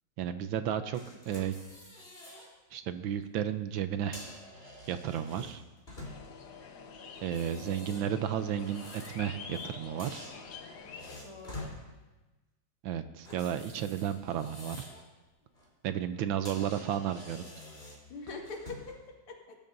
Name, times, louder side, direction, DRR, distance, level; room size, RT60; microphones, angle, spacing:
voice 1, 0.2-1.5 2.7-4.2 4.9-5.6 7.2-10.3 12.8-14.9 15.8-17.5, right 10 dB, 75° right, 10 dB, 1.3 m, -33 dB
sound 1, 0.9-2.5 2.9-3.1 3.9-6.5 7.1-9.7 10.0-11.8 13.2-15.0 15.4-15.7 16.1-16.2 16.4-19.0, left 1 dB, 25° left, 3.7 m, -48 dB
sound 2, 6.0-11.2, left 5 dB, 60° left, 1.6 m, -47 dB
voice 2, 7.4-8.2 11.2-11.7 18.1-19.6, left 3 dB, 85° left, 0 dB, 2.6 m, -45 dB
19.5 x 12.5 x 2.6 m, 1.1 s
omnidirectional pair, 2.4 m